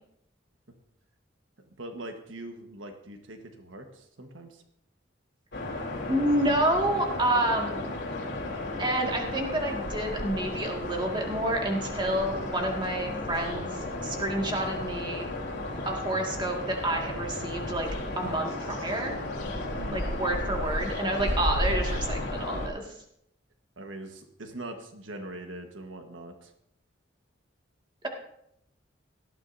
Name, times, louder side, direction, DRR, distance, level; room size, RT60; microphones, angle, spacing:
voice 1, 1.8-4.6 19.7-20.0 23.8-26.5, right 1 dB, 85° right, 5 dB, 1.4 m, -42 dB
sound 1, 5.5-22.7, left 1 dB, 65° left, 3.6 m, -33 dB
voice 2, 6.1-7.9 8.8-15.3 15.9-17.9 18.1-19.2 19.9-22.9, right 1 dB, 25° right, 1 dB, 2.0 m, -29 dB
18.0 x 13.0 x 2.7 m, 0.75 s
head